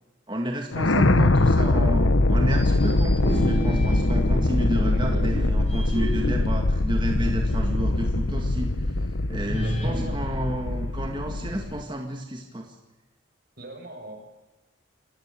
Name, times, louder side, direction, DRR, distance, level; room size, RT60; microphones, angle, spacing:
voice 1, 0.3-12.8, right 1 dB, 25° right, 3 dB, 2.0 m, -31 dB
sound 1, 0.7-11.8, left 2 dB, 85° left, 1.2 m, -23 dB
sound 2, 2.4-4.3 4.9-7.9 8.2-8.3 9.4-11.5, equal, 30° left, 6.7 m, -35 dB
Bass guitar, 3.2-7.0, right 1 dB, ahead, 3.3 m, -34 dB
voice 2, 4.8-5.3 9.5-10.2 13.6-14.2, right 1 dB, 50° right, 3 dB, 5.7 m, -39 dB
27.5 x 15.5 x 8.4 m, 1.1 s
head